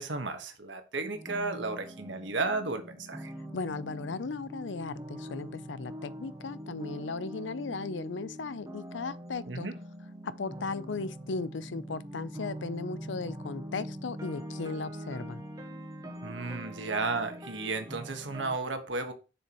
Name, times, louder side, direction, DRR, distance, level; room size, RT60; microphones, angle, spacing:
voice 1, 0.0-3.3 9.5-9.8 16.2-19.1, right 3 dB, 90° right, 1.4 m, -33 dB
sound 1, 1.1-18.6, equal, 20° right, 1.2 m, -43 dB
voice 2, 3.5-9.7 10.2-15.4, left 4 dB, 90° left, 0.6 m, -36 dB
7.1 x 6.9 x 3.0 m
head